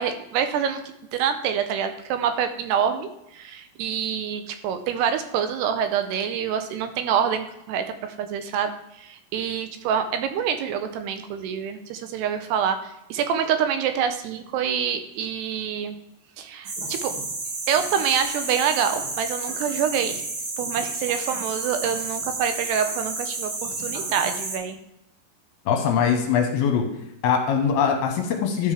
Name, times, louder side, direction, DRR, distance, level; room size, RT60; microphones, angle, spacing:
voice 1, 0.0-16.0 16.4-17.1 17.7-20.2 20.6-24.8, right 8 dB, 80° right, 8 dB, 2.6 m, -26 dB
sound 1, 16.7-24.6, right 3 dB, 60° right, 3.4 m, -31 dB
voice 2, 25.7-26.8 27.2-28.7, left 7 dB, 75° left, 3 dB, 2.8 m, -22 dB
12.0 x 5.3 x 3.4 m, 0.83 s
omnidirectional pair, 4.9 m